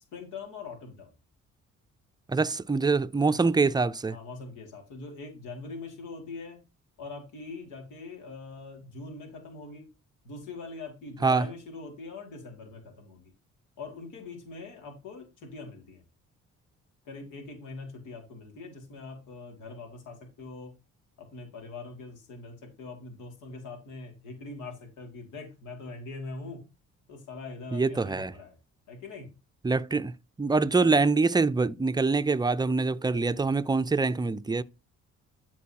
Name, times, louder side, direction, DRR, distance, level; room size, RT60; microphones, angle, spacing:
voice 1, 0.1-1.1 4.1-6.7 7.0-9.9 10.2-13.3 13.8-16.0 17.1-20.7 21.2-26.6 27.1-28.6 28.9-29.4, left 3 dB, 90° left, 2.5 m, -42 dB
voice 2, 2.3-4.2 11.2-11.5 27.7-28.3 29.6-30.1 30.4-34.6, right 4 dB, 15° right, 0.4 m, -25 dB
12.5 x 4.6 x 2.9 m
cardioid pair, 90°, 30 cm